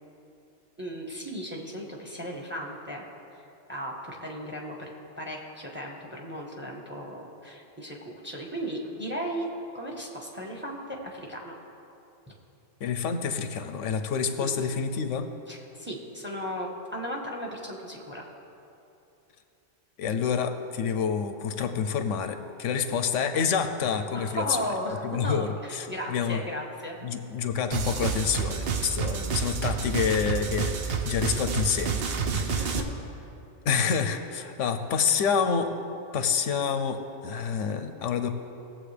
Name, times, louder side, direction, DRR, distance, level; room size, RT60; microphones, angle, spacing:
voice 1, 0.8-3.0 3.3-3.4 3.7-11.6 14.4-14.6 15.5-18.2 24.1-27.0 32.4-32.8, equal, 10° right, -1 dB, 1.1 m, -36 dB
voice 2, 12.8-15.3 20.0-24.6 25.0-26.4 27.0-32.1 32.4-32.7 33.6-35.7 36.1-38.3, left 6 dB, 85° left, 8 dB, 1.0 m, -28 dB
sound 1, 27.7-32.8, right 6 dB, 60° right, 0.9 m, -29 dB
18.0 x 7.6 x 3.3 m, 2.8 s
omnidirectional pair, 1.2 m